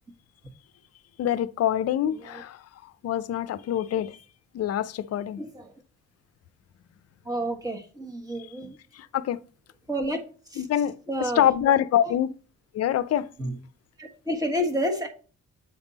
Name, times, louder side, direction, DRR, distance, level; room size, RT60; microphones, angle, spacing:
voice 1, 1.2-2.6 3.0-4.2 4.5-5.4 9.1-9.4 10.6-10.9 11.4-12.3 12.7-13.3, left 10 dB, 55° left, 0.5 m, -25 dB
voice 2, 2.1-2.4 5.4-5.7 7.2-8.8 9.9-10.2 10.5-10.7 11.1-11.5 12.0-12.2 13.4-13.6 14.0-15.1, equal, 10° right, 1.5 m, -30 dB
8.0 x 3.6 x 4.1 m
cardioid pair, 90°, 30 cm